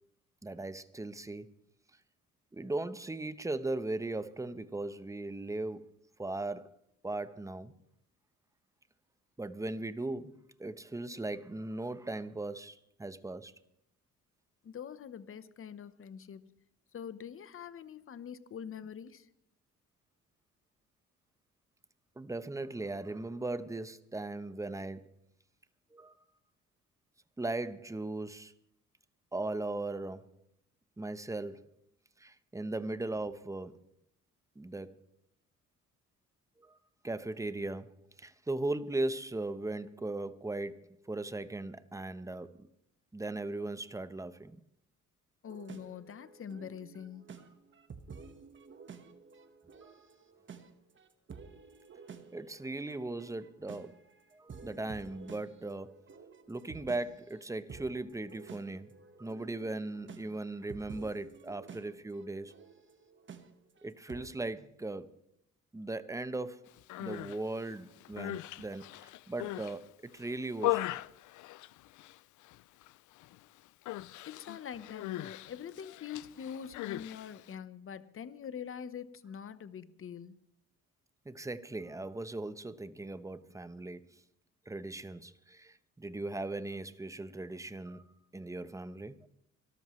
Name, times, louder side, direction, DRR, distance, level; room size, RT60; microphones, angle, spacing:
voice 1, 0.4-1.5 2.5-5.9 6.2-6.7 7.0-7.7 9.4-13.5 22.2-25.1 25.9-26.1 27.4-28.5 29.3-30.2 31.0-31.7 32.2-33.8 34.6-35.0 36.6-36.8 37.0-37.9 38.2-42.7 43.1-44.6 49.7-50.0 52.3-54.0 54.3-56.0 56.5-62.5 63.8-65.1 65.7-66.7 67.0-70.9 81.2-84.2 84.7-89.3, right 2 dB, 10° right, 0.9 m, -38 dB
voice 2, 14.6-16.5 16.9-19.3 45.4-47.3 74.3-80.4, left 8 dB, 45° left, 1.0 m, -44 dB
sound 1, 45.5-64.3, right 5 dB, 40° right, 1.4 m, -52 dB
Human voice, 66.8-67.4 68.0-69.8 70.2-72.2 72.4-72.9 73.2-73.4 73.9-77.5, left 17 dB, 80° left, 0.5 m, -38 dB
25.0 x 13.0 x 3.2 m
cardioid pair, 90°, 30 cm